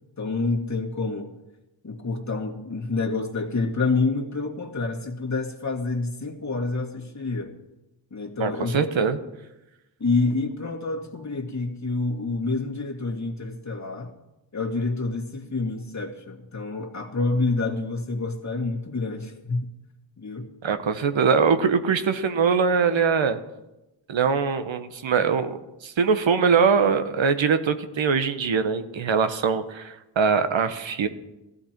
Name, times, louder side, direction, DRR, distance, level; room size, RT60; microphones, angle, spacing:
voice 1, 0.2-1.3 1.8-7.5 8.1-8.9 10.0-14.1 14.5-19.7 20.2-20.5, left 3 dB, 35° left, 1 dB, 2.1 m, -28 dB
voice 2, 8.4-9.2 20.6-23.4 24.1-31.1, right 5 dB, 70° right, 10 dB, 1.2 m, -22 dB
14.5 x 14.0 x 4.5 m, 0.97 s
cardioid pair, 60°, 48 cm